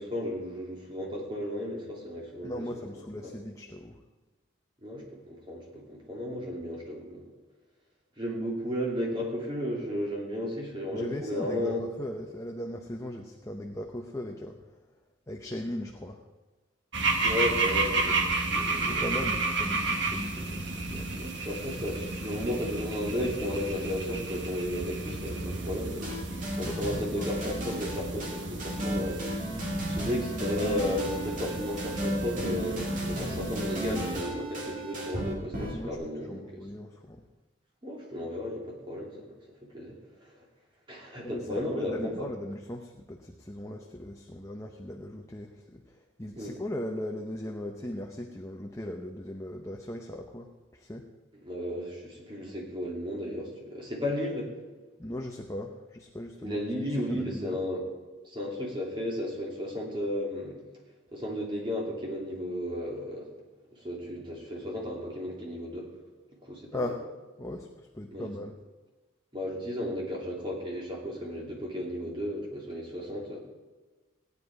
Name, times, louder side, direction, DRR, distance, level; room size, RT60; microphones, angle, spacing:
voice 1, 0.0-2.8 3.2-3.3 4.8-7.2 8.2-11.8 17.2-18.2 18.5-19.0 21.2-26.1 26.6-29.6 29.9-36.6 37.8-39.4 39.6-40.3 40.9-42.3 46.4-46.5 51.4-54.5 56.4-57.8 58.2-60.6 61.1-63.3 63.7-65.9 66.4-66.9 68.1-68.3 69.3-73.4, left 1 dB, 25° right, -3 dB, 2.9 m, -34 dB
voice 2, 2.4-4.0 10.9-14.6 15.3-16.2 18.7-21.2 26.6-27.3 35.7-37.2 41.2-51.1 55.0-56.6 56.9-57.6 66.7-67.0 67.4-68.5, left 1 dB, 15° left, 2 dB, 0.7 m, -38 dB
sound 1, 16.9-34.2, right 3 dB, 60° right, 1.4 m, -32 dB
sound 2, 26.0-35.9, right 1 dB, 40° right, 2.5 m, -35 dB
16.5 x 9.8 x 4.8 m, 1.2 s
head